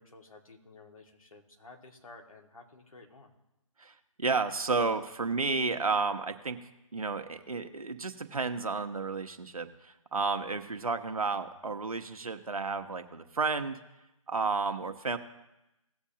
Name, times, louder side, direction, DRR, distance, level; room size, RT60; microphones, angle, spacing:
voice 1, 0.0-3.3, left 3 dB, 75° left, 2 dB, 2.1 m, -53 dB
voice 2, 3.8-13.8 14.3-15.2, right 4 dB, 85° right, 7 dB, 1.3 m, -32 dB
18.5 x 7.1 x 2.9 m, 0.94 s
figure-of-eight pair, 150°, 18 cm